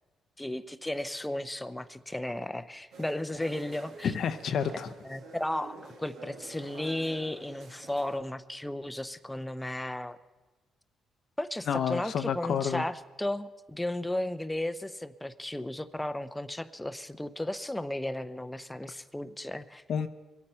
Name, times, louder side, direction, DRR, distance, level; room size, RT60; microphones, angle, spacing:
voice 1, 0.4-4.1 5.0-10.2 11.4-19.8, left 1 dB, 10° left, 11 dB, 0.6 m, -34 dB
sound 1, 2.9-8.2, right 3 dB, 80° right, 2.2 m, -48 dB
voice 2, 4.0-4.9 11.7-12.8 19.9-20.1, left 7 dB, 65° left, 9 dB, 0.6 m, -29 dB
24.0 x 8.7 x 5.6 m, 1.3 s
cardioid pair, 90°, 0 cm